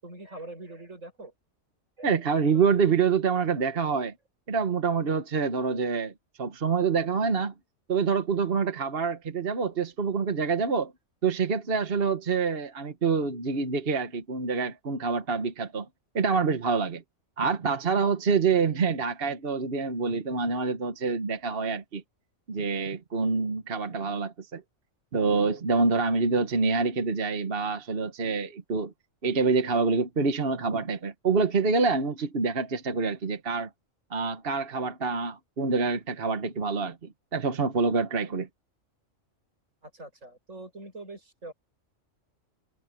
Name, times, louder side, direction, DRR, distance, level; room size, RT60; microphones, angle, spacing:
voice 1, 0.0-1.3 2.0-2.6 39.8-41.5, right 2 dB, 85° right, 7.4 m, -44 dB
voice 2, 2.0-4.1 4.5-6.1 6.4-7.5 7.9-10.9 11.2-15.9 16.1-17.0 17.4-22.0 22.5-24.6 25.1-28.9 29.2-33.7 34.1-37.0 37.3-38.5, right 5 dB, 50° right, 1.4 m, -26 dB
omnidirectional pair, 1.3 m